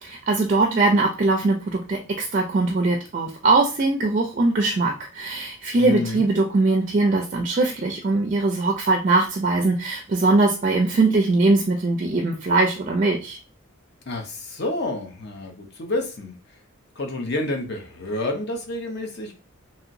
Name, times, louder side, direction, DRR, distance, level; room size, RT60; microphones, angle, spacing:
voice 1, 0.0-13.4, right 3 dB, 35° right, 2 dB, 0.4 m, -21 dB
voice 2, 5.7-6.2 14.1-16.4 17.0-19.3, left 2 dB, 50° left, 3 dB, 0.7 m, -29 dB
2.9 x 2.8 x 2.6 m, 0.34 s
head